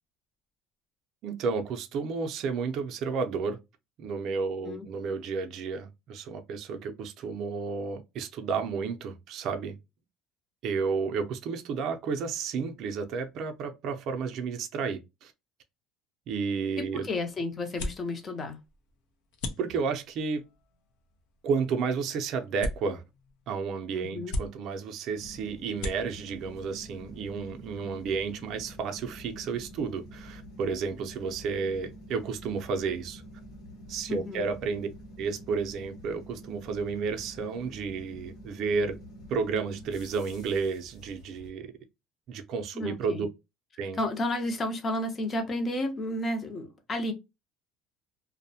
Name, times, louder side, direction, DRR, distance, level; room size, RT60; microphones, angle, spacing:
voice 1, 1.2-3.6 4.0-9.8 10.6-15.3 16.3-17.0 19.6-20.4 21.4-23.0 23.5-33.2 33.9-34.9 35.2-39.0 39.3-41.7 42.3-43.3 43.8-44.0, right 5 dB, 45° right, 0.4 m, -32 dB
sound 1, 16.3-27.9, left 1 dB, 80° left, 0.6 m, -42 dB
voice 2, 16.8-18.6 24.0-24.4 34.1-34.5 42.7-43.3 44.0-47.1, left 1 dB, 25° left, 0.5 m, -32 dB
sound 2, 25.1-41.5, equal, 65° left, 1.0 m, -47 dB
2.6 x 2.0 x 2.6 m
cardioid pair, 160°, 0 cm